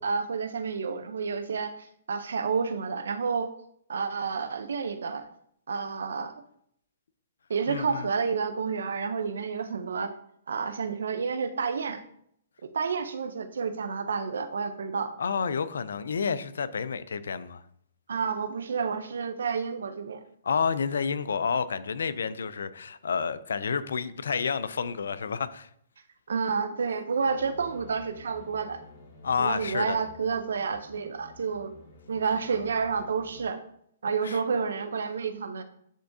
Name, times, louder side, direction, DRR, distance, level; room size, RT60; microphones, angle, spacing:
voice 1, 0.0-1.7 2.1-3.5 3.9-5.2 5.7-6.3 7.5-10.1 10.5-12.0 12.7-15.1 18.1-20.2 26.3-28.8 29.4-31.7 32.1-33.6 34.0-35.6, right 5 dB, 80° right, 0.7 m, -30 dB
voice 2, 7.7-8.1 15.2-17.6 20.4-25.7 29.2-30.0 34.2-34.4, left 6 dB, 85° left, 0.4 m, -30 dB
sound 1, 27.2-33.4, left 2 dB, 55° left, 1.7 m, -51 dB
10.0 x 3.5 x 2.7 m
hypercardioid pair, 140°, 0 cm